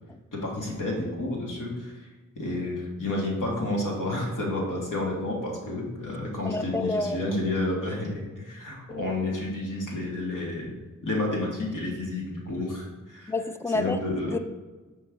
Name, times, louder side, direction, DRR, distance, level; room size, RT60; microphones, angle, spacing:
voice 1, 0.4-2.1 2.3-10.8 11.0-13.3 13.7-14.3, left 2 dB, 70° left, -3 dB, 1.6 m, -30 dB
voice 2, 6.4-7.3 8.9-9.0 13.3-14.0 14.3-14.4, left 2 dB, 10° left, 9 dB, 0.4 m, -29 dB
5.5 x 5.1 x 3.5 m, 1.3 s
cardioid pair, 45°, 33 cm